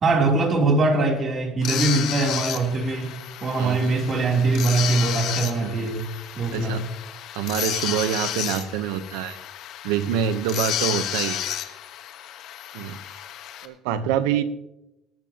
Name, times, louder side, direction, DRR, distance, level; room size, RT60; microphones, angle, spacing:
voice 1, 0.0-3.1 3.4-6.0 6.4-6.8, right 3 dB, 40° right, 1 dB, 3.3 m, -22 dB
sound 1, 1.6-13.7, left 11 dB, 65° left, 1.3 m, -32 dB
voice 2, 3.6-4.0 5.6-5.9 6.5-6.8 7.3-9.4 9.8-11.4 12.7-13.0 13.6-14.4, right 9 dB, 90° right, 13 dB, 0.9 m, -26 dB
20.5 x 12.0 x 3.0 m, 0.91 s
cardioid pair, 105°, 0 cm